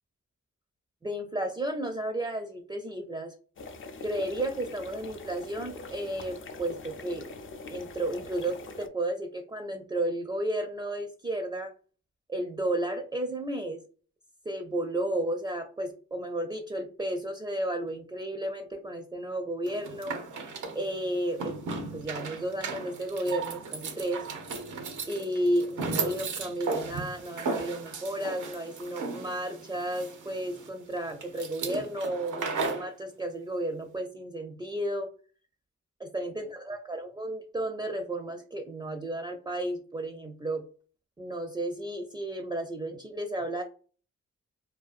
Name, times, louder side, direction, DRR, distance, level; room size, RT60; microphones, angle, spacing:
voice 1, 1.0-3.3 4.0-7.3 7.7-11.7 12.3-13.8 14.4-20.2 20.7-21.6 21.9-24.3 25.1-35.1 36.0-40.6 41.2-43.6, right 1 dB, 15° right, 4 dB, 0.4 m, -33 dB
sound 1, 3.6-8.9, left 3 dB, 45° left, 0.4 m, -43 dB
sound 2, 19.7-32.9, right 4 dB, 85° right, 0.6 m, -36 dB
2.6 x 2.2 x 2.4 m, 0.38 s
cardioid pair, 75°, 29 cm